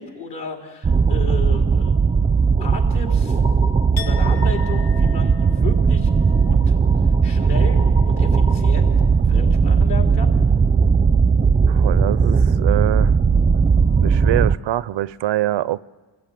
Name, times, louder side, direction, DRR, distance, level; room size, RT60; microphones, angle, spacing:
voice 1, 0.0-3.4 3.9-6.8 7.2-8.9 9.3-10.3, left 5 dB, 60° left, 3.9 m, -34 dB
sound 1, 0.8-14.6, right 5 dB, 20° right, 0.6 m, -17 dB
Chink clink, 4.0-9.9 10.2-10.6, left 8 dB, 90° left, 1.5 m, -42 dB
voice 2, 11.7-13.2 14.0-15.8, right 14 dB, 70° right, 0.6 m, -24 dB
24.0 x 15.0 x 9.1 m
cardioid pair, 95°, 45 cm